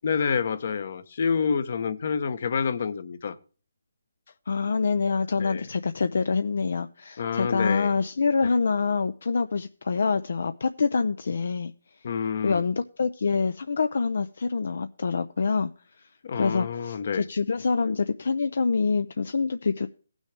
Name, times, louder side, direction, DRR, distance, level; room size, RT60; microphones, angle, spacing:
voice 1, 0.0-3.4 5.4-5.6 7.2-7.9 12.0-12.6 16.2-17.2, left 6 dB, 50° left, 0.9 m, -28 dB
voice 2, 4.5-11.7 12.4-15.7 16.3-19.9, left 4 dB, 65° left, 0.5 m, -26 dB
18.0 x 6.3 x 3.3 m
hypercardioid pair, 165°, 0 cm